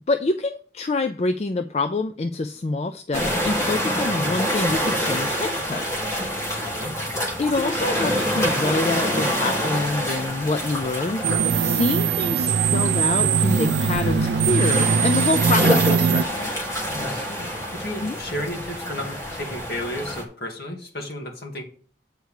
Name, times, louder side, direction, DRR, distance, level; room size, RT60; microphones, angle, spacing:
voice 1, 0.0-6.5 7.4-16.5 18.0-18.2, left 3 dB, 35° left, 9 dB, 0.4 m, -26 dB
sound 1, 3.1-20.2, equal, 15° left, 1.9 m, -27 dB
voice 2, 6.6-7.0 16.9-21.6, left 1 dB, 60° left, 1 dB, 2.2 m, -33 dB
sound 2, 11.2-16.2, right 6 dB, 80° right, 0.4 m, -21 dB
8.1 x 4.6 x 6.5 m, 0.43 s
head